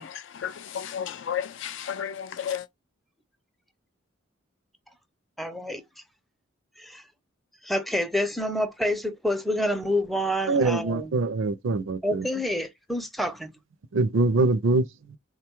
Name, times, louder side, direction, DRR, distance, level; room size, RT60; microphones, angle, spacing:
voice 1, 0.0-2.7, left 8 dB, 65° left, 0.4 m, -33 dB
voice 2, 5.4-5.8 6.8-7.0 7.6-11.1 12.0-13.5, equal, ahead, 0.5 m, -28 dB
voice 3, 10.5-12.3 13.9-15.2, right 3 dB, 70° right, 0.5 m, -24 dB
3.7 x 2.2 x 2.9 m
head